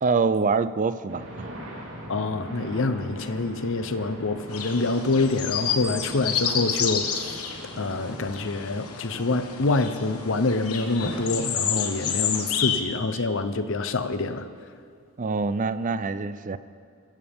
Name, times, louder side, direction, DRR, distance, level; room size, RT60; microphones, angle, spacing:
voice 1, 0.0-1.5 15.2-16.6, right 4 dB, 35° right, 14 dB, 0.4 m, -25 dB
sound 1, 1.1-11.8, equal, 55° right, 3.5 m, -42 dB
voice 2, 2.1-14.5, left 3 dB, 60° left, 10 dB, 0.8 m, -26 dB
sound 2, 4.5-12.8, left 7 dB, 80° left, 1.4 m, -30 dB
22.0 x 16.0 x 3.6 m, 2.4 s
head